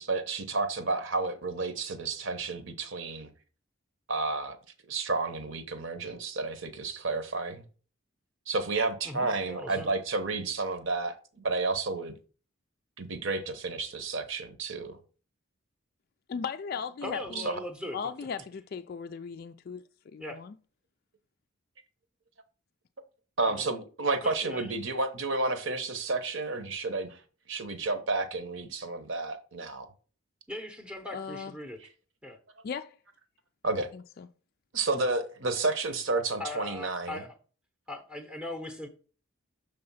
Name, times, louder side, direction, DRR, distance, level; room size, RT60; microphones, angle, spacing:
voice 1, 0.0-3.3 4.1-4.6 4.9-7.6 8.5-12.1 13.0-15.0 17.3-17.6 23.4-27.2 27.5-29.9 33.6-33.9 34.7-37.2, right 3 dB, 60° right, 1.0 m, -31 dB
voice 2, 9.0-9.9 17.0-18.0 20.2-20.4 23.4-23.8 24.2-24.7 30.5-31.8 32.2-32.4 36.4-37.4 37.9-38.9, left 1 dB, 5° right, 0.7 m, -39 dB
voice 3, 16.3-17.4 17.9-19.8 20.1-20.5 31.1-31.5 32.6-32.9 33.9-34.3, left 6 dB, 45° left, 0.3 m, -37 dB
6.7 x 3.5 x 5.5 m
head